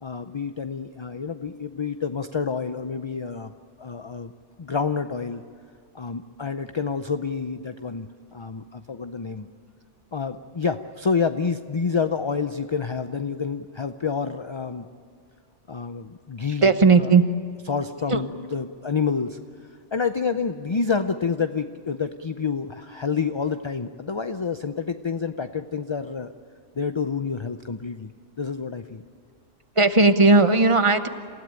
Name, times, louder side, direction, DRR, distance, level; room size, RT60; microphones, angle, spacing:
voice 1, 0.0-3.5 3.8-4.3 4.6-5.4 5.9-9.5 10.1-14.9 15.7-16.7 17.0-17.1 17.7-19.4 19.9-26.3 26.8-28.1 28.4-29.0, left 5 dB, 35° left, 9 dB, 0.4 m, -28 dB
voice 2, 16.6-17.2 18.1-18.2 29.8-31.1, right 3 dB, 30° right, 10 dB, 1.0 m, -16 dB
28.0 x 16.0 x 8.9 m, 2.3 s
omnidirectional pair, 1.2 m